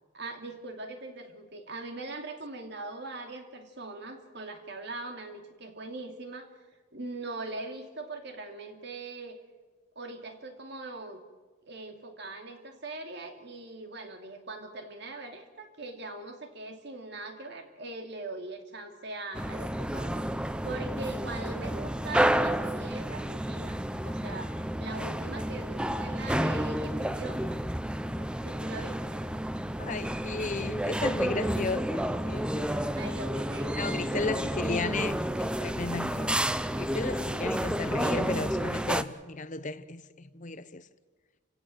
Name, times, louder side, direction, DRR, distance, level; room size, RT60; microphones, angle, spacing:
voice 1, 0.1-6.5 6.9-9.4 9.9-11.2 11.7-27.6 28.2-29.2 31.6-31.7 32.6-34.6 37.3-37.5, right 2 dB, 55° right, 2.7 m, -41 dB
sound 1, 19.3-39.0, right 1 dB, 5° right, 0.6 m, -30 dB
voice 2, 29.8-32.9 33.8-36.3 36.7-40.8, left 3 dB, 40° left, 0.8 m, -34 dB
29.0 x 16.5 x 7.9 m
head